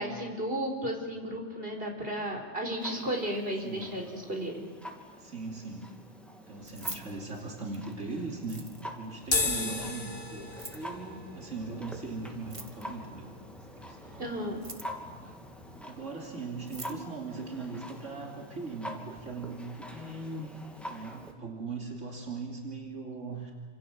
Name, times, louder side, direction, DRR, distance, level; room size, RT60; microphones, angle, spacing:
voice 1, 0.0-4.6 9.4-9.8 14.2-14.6, right 1 dB, 50° right, 2 dB, 5.0 m, -34 dB
Clock, 2.8-21.3, equal, ahead, 3.2 m, -47 dB
voice 2, 5.1-5.9 6.5-8.7 9.0-13.3 13.8-14.3 15.8-20.5 20.9-23.5, right 3 dB, 85° right, 0 dB, 3.5 m, -39 dB
Keys jangling, 6.5-7.9 8.4-9.1 10.4-10.9 12.4-13.1 14.4-15.1 16.2-16.3 16.6-17.0, right 2 dB, 25° right, 2.1 m, -43 dB
sound 1, 9.2-15.8, left 3 dB, 50° left, 2.9 m, -37 dB
29.0 x 27.0 x 7.5 m, 1.5 s
omnidirectional pair, 1.2 m